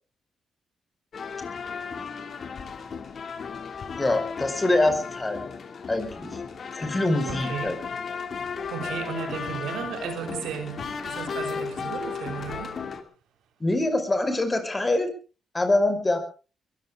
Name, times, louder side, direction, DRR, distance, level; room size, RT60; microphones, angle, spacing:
sound 1, 1.1-13.0, left 5 dB, 55° left, 2.5 m, -35 dB
voice 1, 4.0-5.5 5.9-6.4 6.7-7.8 13.6-15.1 15.5-16.2, left 2 dB, 25° left, 5.0 m, -24 dB
voice 2, 7.2-7.8 8.7-12.9, right 8 dB, 80° right, 3.4 m, -35 dB
22.5 x 15.0 x 3.7 m
supercardioid pair, 60°, 0 cm